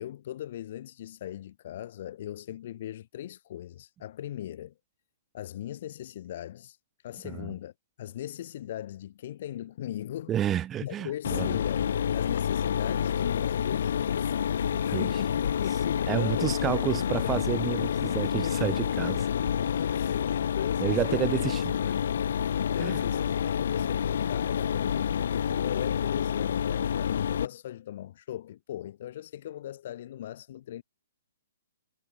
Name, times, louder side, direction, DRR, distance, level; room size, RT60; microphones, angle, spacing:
voice 1, 0.0-4.7 5.3-7.7 8.0-10.4 10.8-16.6 17.0-18.6 19.9-21.5 21.7-21.9 22.4-30.8, left 12 dB, 40° left, 2.1 m, -39 dB
voice 2, 10.3-11.5 14.7-15.1 16.1-19.3 20.8-21.6 22.8-23.0, right 10 dB, 10° right, 2.6 m, -30 dB
Mechanisms, 11.2-27.5, left 8 dB, 60° left, 0.4 m, -28 dB
hypercardioid pair, 170°, 0 cm